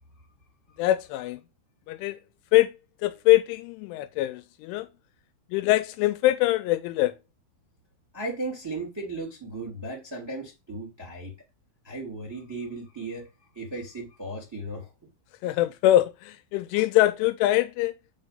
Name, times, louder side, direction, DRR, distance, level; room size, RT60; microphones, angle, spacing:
voice 1, 0.8-1.4 1.9-2.2 2.5-2.7 3.0-4.9 5.5-7.1 15.4-17.9, left 15 dB, 85° left, 2.9 m, -23 dB
voice 2, 8.1-11.3 11.8-13.3 13.5-14.9, right 2 dB, 10° right, 1.9 m, -36 dB
8.4 x 4.4 x 5.3 m
omnidirectional pair, 5.7 m